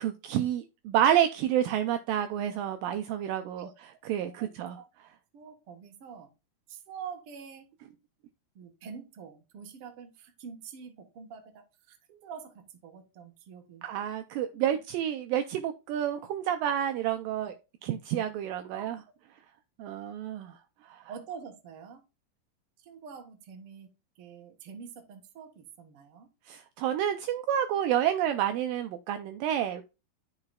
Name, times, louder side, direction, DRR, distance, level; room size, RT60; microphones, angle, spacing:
voice 1, 0.0-3.7 4.1-4.8 13.8-17.5 17.9-19.0 19.8-20.5 20.9-21.0 26.5-29.8, right 10 dB, 80° right, 2.1 m, -29 dB
voice 2, 4.3-4.9 5.3-6.3 6.7-7.7 8.5-13.8 17.4-17.5 18.7-18.9 21.1-22.0 22.8-23.9 24.2-26.3, right 6 dB, 60° right, 1.6 m, -46 dB
13.0 x 4.9 x 2.3 m
omnidirectional pair, 4.3 m